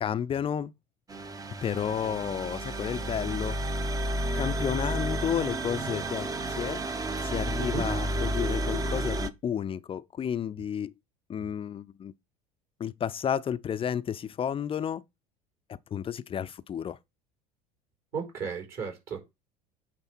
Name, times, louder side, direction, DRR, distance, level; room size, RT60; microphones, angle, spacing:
voice 1, 0.0-0.7 1.6-3.6 4.3-6.3 6.6-6.8 7.2-10.9 11.3-12.1 12.8-15.0 15.9-17.0, left 8 dB, 30° left, 0.5 m, -31 dB
sound 1, 1.1-9.3, right 1 dB, 20° right, 0.7 m, -31 dB
voice 2, 18.1-19.2, right 5 dB, 55° right, 4.0 m, -34 dB
8.9 x 3.2 x 6.0 m
hypercardioid pair, 75°, 20 cm